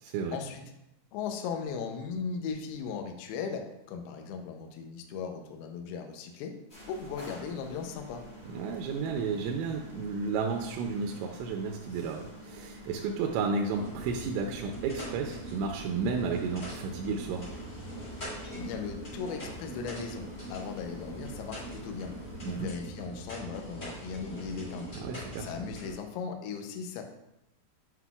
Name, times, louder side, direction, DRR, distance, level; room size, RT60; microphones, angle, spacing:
voice 1, 0.3-0.6 1.1-6.5 6.9-8.2 18.5-22.1 22.4-24.9 25.4-27.0, left 6 dB, 85° left, 4 dB, 2.2 m, -37 dB
sound 1, 6.7-22.7, left 1 dB, 60° left, 0.6 m, -49 dB
voice 2, 8.5-17.5 22.4-22.7 25.0-25.5, right 5 dB, 85° right, 2 dB, 2.9 m, -32 dB
sound 2, 13.7-25.9, right 1 dB, 30° left, 1.9 m, -42 dB
7.6 x 6.0 x 2.3 m, 0.86 s
omnidirectional pair, 5.4 m